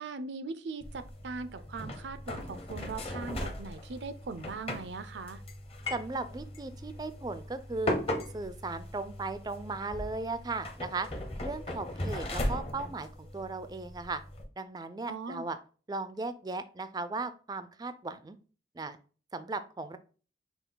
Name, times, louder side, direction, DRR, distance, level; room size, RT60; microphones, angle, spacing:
voice 1, 0.0-5.4 15.1-15.4, right 4 dB, 90° right, 12 dB, 0.5 m, -40 dB
sound 1, 0.8-14.4, left 1 dB, 35° left, 0.8 m, -38 dB
voice 2, 5.9-8.0 8.3-11.1 11.4-14.2 14.6-15.6 15.9-18.4 18.7-19.0 19.3-20.0, right 3 dB, 20° right, 11 dB, 0.3 m, -37 dB
5.6 x 2.4 x 3.7 m, 0.39 s
head